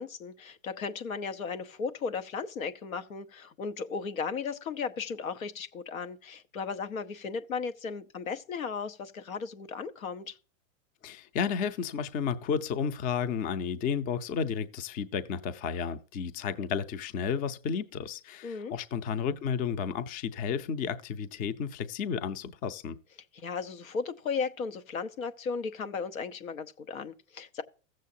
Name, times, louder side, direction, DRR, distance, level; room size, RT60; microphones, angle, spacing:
voice 1, 0.0-10.4 18.4-18.7 23.3-27.6, left 5 dB, 90° left, 1.1 m, -36 dB
voice 2, 11.0-23.0, left 7 dB, 20° left, 0.5 m, -32 dB
15.0 x 7.4 x 2.7 m
hypercardioid pair, 130°, 40 cm